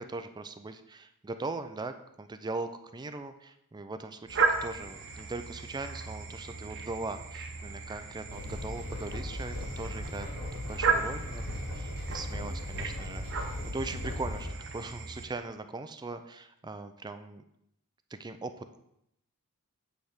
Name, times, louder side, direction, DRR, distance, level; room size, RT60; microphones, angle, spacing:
voice 1, 0.0-10.3 10.7-17.4 18.2-18.8, right 3 dB, 20° right, 9 dB, 0.4 m, -40 dB
sound 1, 4.3-15.3, right 5 dB, 55° right, 0.9 m, -35 dB
sound 2, 8.3-14.5, left 1 dB, 85° left, 2.8 m, -38 dB
8.7 x 3.4 x 6.5 m, 0.79 s
head